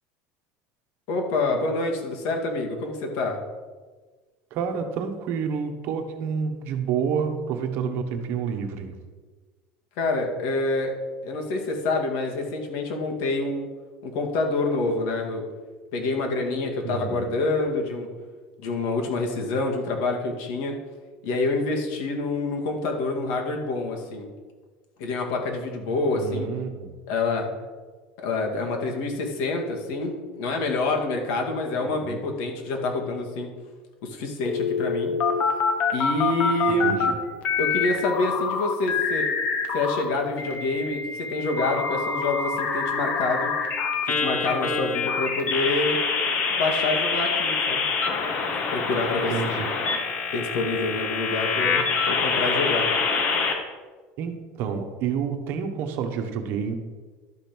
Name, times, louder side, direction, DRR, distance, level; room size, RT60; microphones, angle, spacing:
voice 1, 1.1-3.4 10.0-10.9 11.2-13.7 14.0-15.4 15.9-18.1 18.6-20.8 21.2-24.3 25.0-26.5 27.1-27.5 28.2-33.5 34.0-35.1 35.9-37.0 37.6-39.3 39.7-43.5 44.0-46.0 46.5-47.8 48.7-49.6 50.3-52.9, left 2 dB, 65° left, 2 dB, 2.1 m, -27 dB
voice 2, 4.5-8.9 16.8-17.3 26.1-26.9 32.0-32.2 36.8-37.1 49.3-50.0 54.2-56.7, right 6 dB, 50° right, 6 dB, 1.2 m, -29 dB
sound 1, 34.4-37.1 37.4-40.0 40.4-53.5, left 5 dB, 40° left, 1.5 m, -26 dB
12.0 x 5.2 x 6.1 m, 1.4 s
cardioid pair, 155°, 5 cm